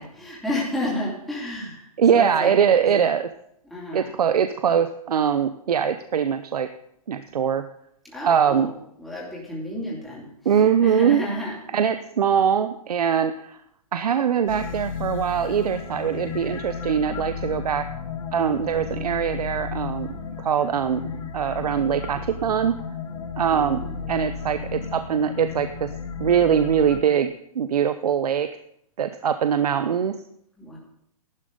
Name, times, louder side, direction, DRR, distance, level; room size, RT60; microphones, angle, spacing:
voice 1, 0.0-2.5 2.8-2.9 3.7-4.1 8.0-8.7 9.0-10.3 10.8-11.5 23.5-24.0 30.6-30.8, left 1 dB, ahead, -6 dB, 3.1 m, -31 dB
voice 2, 2.0-3.3 3.9-6.7 7.1-7.6 8.2-8.7 10.4-11.3 11.7-13.6 13.9-17.9 18.3-21.0 21.3-22.8 23.4-23.8 24.1-25.9 26.2-28.5 29.0-30.1, right 8 dB, 85° right, 10 dB, 0.8 m, -22 dB
sound 1, 14.5-27.0, left 6 dB, 60° left, 2.0 m, -34 dB
14.0 x 12.0 x 4.0 m, 0.74 s
hypercardioid pair, 160°, 19 cm